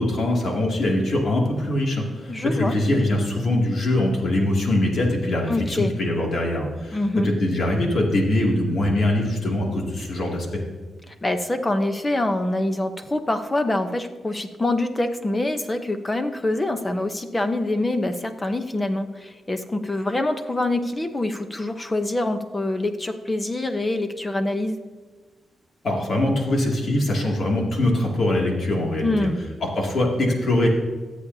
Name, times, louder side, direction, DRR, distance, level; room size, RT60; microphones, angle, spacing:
voice 1, 0.0-7.0 7.2-10.6 25.8-29.3 29.6-30.7, left 1 dB, 55° left, -1 dB, 2.5 m, -22 dB
voice 2, 2.3-2.7 5.5-5.9 6.9-7.3 11.1-24.8 29.0-29.4, left 2 dB, 20° left, 7 dB, 0.8 m, -25 dB
24.5 x 8.3 x 2.8 m, 1.4 s
wide cardioid pair, 130°, 0 cm